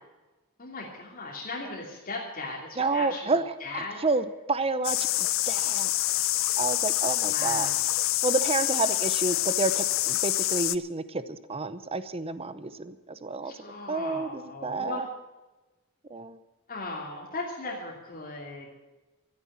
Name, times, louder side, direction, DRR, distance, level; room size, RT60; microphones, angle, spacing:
voice 1, 0.6-4.0 7.2-7.9 13.4-15.1 16.7-18.7, left 3 dB, 40° left, -3 dB, 2.8 m, -38 dB
voice 2, 2.8-5.9 6.6-7.7 8.2-13.5 13.9-15.0 16.1-16.4, right 3 dB, 25° right, 13 dB, 0.7 m, -30 dB
sound 1, 4.8-10.8, left 16 dB, 65° left, 0.6 m, -26 dB
13.5 x 9.8 x 8.9 m, 1.1 s
head